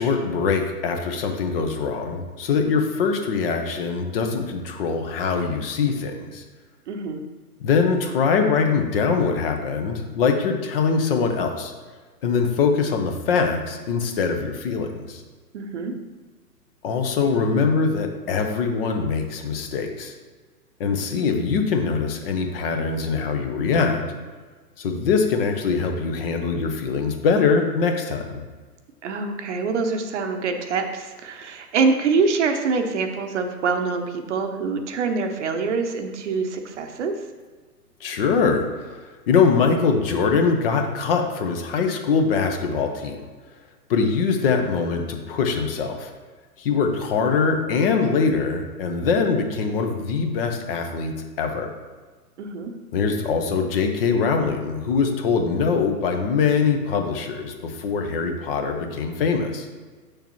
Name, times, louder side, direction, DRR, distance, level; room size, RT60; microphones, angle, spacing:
voice 1, 0.0-6.4 7.6-11.7 12.2-15.2 16.8-20.1 20.8-24.0 24.8-28.4 38.0-39.0 39.3-43.2 43.9-46.1 46.6-51.7 52.9-59.7, left 5 dB, 35° left, 4 dB, 0.8 m, -23 dB
voice 2, 6.9-7.2 15.5-15.9 29.0-37.1 52.4-52.7, right 4 dB, 45° right, 6 dB, 0.9 m, -25 dB
7.3 x 6.7 x 3.1 m, 1.4 s
hypercardioid pair, 130°, 48 cm